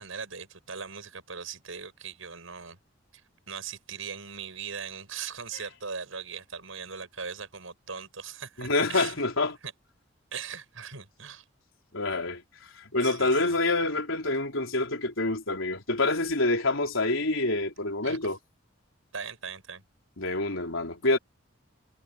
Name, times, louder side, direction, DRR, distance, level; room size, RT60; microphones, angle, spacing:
voice 1, 0.0-2.8 3.5-9.2 9.6-9.7 10.3-11.4 13.0-13.4 18.0-18.2 19.1-19.8, right 6 dB, 85° right, 6.4 m, -39 dB
voice 2, 8.6-9.6 11.9-12.4 12.8-18.4 20.2-21.2, left 2 dB, 80° left, 4.0 m, -27 dB
head